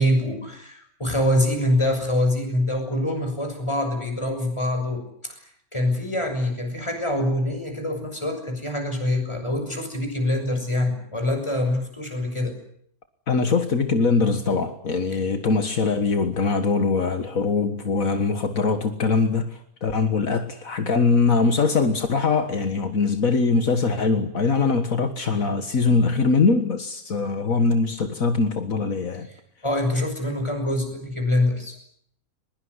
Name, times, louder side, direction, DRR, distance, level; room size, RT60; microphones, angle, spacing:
voice 1, 0.0-12.6 15.1-15.2 29.3-31.8, left 1 dB, 20° left, 6.7 m, -25 dB
voice 2, 13.3-29.3, left 4 dB, 70° left, 2.0 m, -22 dB
22.5 x 22.0 x 9.7 m
omnidirectional pair, 1.5 m